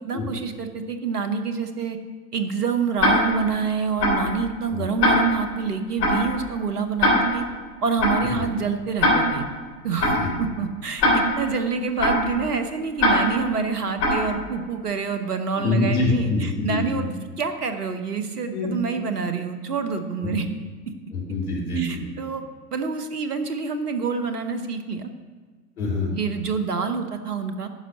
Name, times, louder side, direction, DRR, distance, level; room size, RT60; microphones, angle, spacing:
voice 1, 0.0-2.0 2.3-7.4 7.8-9.4 9.8-17.1 17.4-20.4 21.8-22.4 22.7-25.1 26.1-27.7, right 5 dB, 80° right, 8 dB, 0.9 m, -27 dB
Tick-tock, 3.0-3.5 4.0-4.3 5.0-5.5 6.0-6.3 7.0-7.5 8.0-8.3 9.0-9.5 10.0-10.3 11.0-11.5 12.0-12.3 13.0-13.5 14.0-14.3, left 1 dB, 35° left, 3.5 m, -21 dB
voice 2, 15.6-17.0 18.5-18.7 20.2-20.3 21.1-22.0 25.8-26.1, left 2 dB, 65° left, -3 dB, 2.9 m, -25 dB
10.0 x 5.6 x 6.3 m, 1.5 s
figure-of-eight pair, 90°, 46 cm